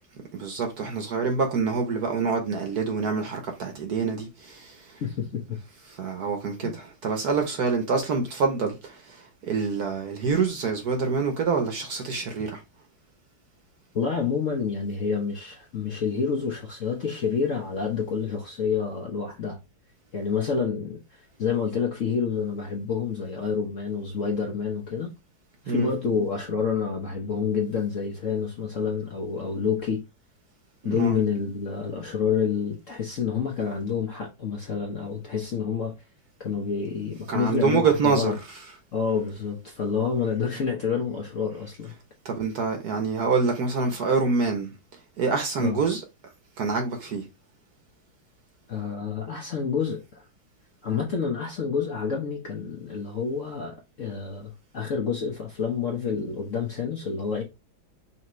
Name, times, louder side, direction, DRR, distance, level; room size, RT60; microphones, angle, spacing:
voice 1, 0.3-4.9 5.9-12.6 25.7-25.9 30.8-31.2 37.3-38.3 42.2-44.7 45.2-46.0 46.6-47.2, right 5 dB, 60° right, 1.2 m, -26 dB
voice 2, 5.0-5.6 6.6-6.7 13.9-19.6 20.1-21.0 21.4-25.1 25.6-30.0 30.8-35.9 36.4-38.4 38.9-41.9 45.6-45.8 48.7-50.2 50.8-57.4, left 6 dB, 50° left, 1.0 m, -28 dB
5.8 x 2.8 x 3.0 m
omnidirectional pair, 2.3 m